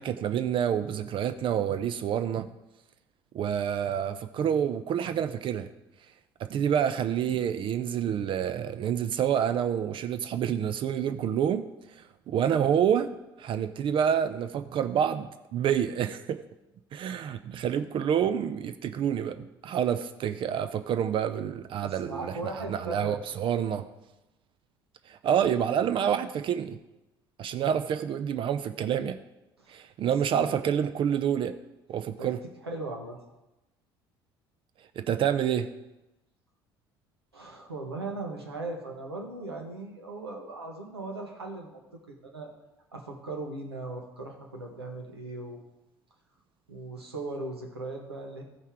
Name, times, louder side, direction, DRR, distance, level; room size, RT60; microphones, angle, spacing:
voice 1, 0.0-2.5 3.3-5.7 6.4-11.7 12.0-16.4 16.9-23.9 25.1-26.8 27.4-29.2 29.7-31.5 31.9-32.4 35.0-35.7, right 9 dB, 40° right, 11 dB, 0.5 m, -28 dB
voice 2, 21.8-23.2 27.5-27.8 29.6-30.6 32.2-32.3 32.6-33.2 37.3-41.8 42.1-42.5 42.9-45.6 46.7-48.4, right 2 dB, 85° right, 1 dB, 1.4 m, -38 dB
14.0 x 5.6 x 4.7 m, 0.99 s
figure-of-eight pair, 60°, 13 cm